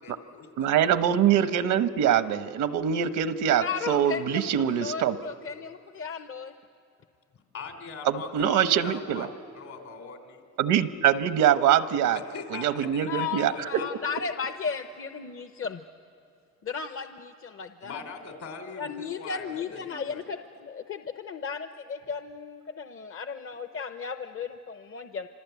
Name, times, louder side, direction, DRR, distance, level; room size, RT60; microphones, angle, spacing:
voice 1, 0.0-0.9 7.5-9.3 9.5-10.4 12.2-14.2 17.8-20.2, left 4 dB, 65° left, 4 dB, 3.7 m, -41 dB
voice 2, 0.6-5.2 8.0-9.3 10.6-12.2 12.5-13.8, right 9 dB, 90° right, 12 dB, 1.0 m, -24 dB
voice 3, 3.6-6.5 13.0-15.8 16.6-18.0 18.8-25.3, left 6 dB, 45° left, 8 dB, 0.8 m, -35 dB
27.0 x 26.0 x 8.2 m, 2.5 s
cardioid pair, 90°, 30 cm